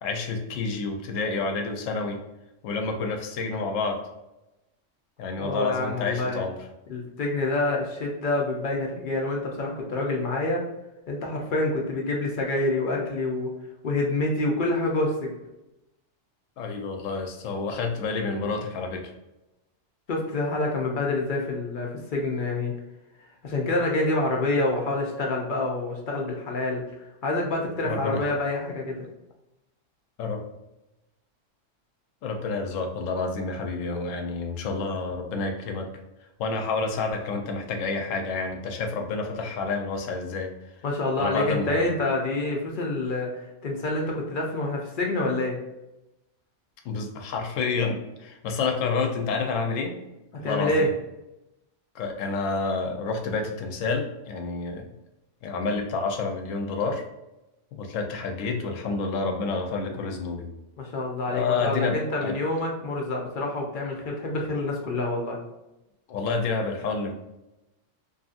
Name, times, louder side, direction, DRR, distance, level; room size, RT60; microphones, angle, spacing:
voice 1, 0.0-2.2 2.6-4.0 5.2-6.6 16.6-19.1 27.8-28.2 30.2-30.4 32.2-35.9 36.4-40.5 41.2-41.9 46.8-50.0 50.4-50.9 51.9-54.9 55.4-57.0 57.7-60.4 61.3-62.3 66.1-67.1, left 4 dB, 85° left, 3 dB, 0.9 m, -29 dB
voice 2, 5.4-6.4 6.9-10.6 11.1-13.5 13.8-15.3 20.1-22.7 23.4-26.8 27.2-29.1 40.8-45.6 50.3-50.9 60.8-65.4, left 2 dB, 55° left, -1 dB, 0.6 m, -27 dB
2.7 x 2.6 x 2.4 m, 0.94 s
omnidirectional pair, 1.3 m